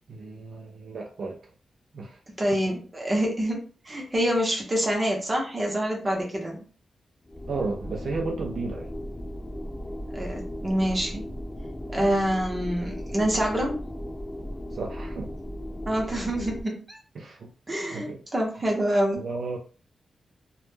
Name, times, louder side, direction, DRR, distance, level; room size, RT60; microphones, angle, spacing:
voice 1, 0.1-1.5 1.9-2.2 7.5-8.9 14.7-15.3 17.2-17.5 17.9-18.2 19.2-19.6, right 3 dB, 60° right, 0 dB, 0.3 m, -33 dB
voice 2, 2.4-3.6 3.8-6.6 10.1-11.2 11.9-13.8 15.9-17.0 17.7-19.2, equal, 20° right, -1 dB, 0.6 m, -26 dB
sound 1, 7.2-16.6, equal, 20° left, 0.3 m, -36 dB
2.1 x 2.0 x 3.1 m, 0.39 s
wide cardioid pair, 175°, 0 cm